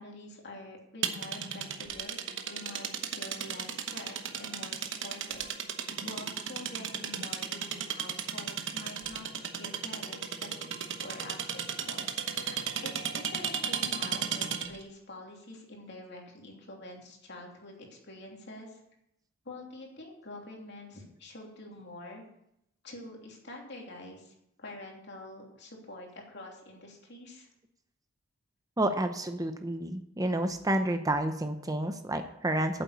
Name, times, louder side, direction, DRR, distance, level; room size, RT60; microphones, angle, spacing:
voice 1, 0.0-5.4 5.7-12.1 12.3-18.8 19.4-22.2 22.8-24.3 24.6-27.5, left 2 dB, 55° left, 0 dB, 3.0 m, -46 dB
sound 1, 1.0-14.8, right 7 dB, 65° right, 1.1 m, -35 dB
voice 2, 28.8-32.8, right 1 dB, 15° right, 7 dB, 0.7 m, -30 dB
8.9 x 7.8 x 8.3 m, 0.80 s
head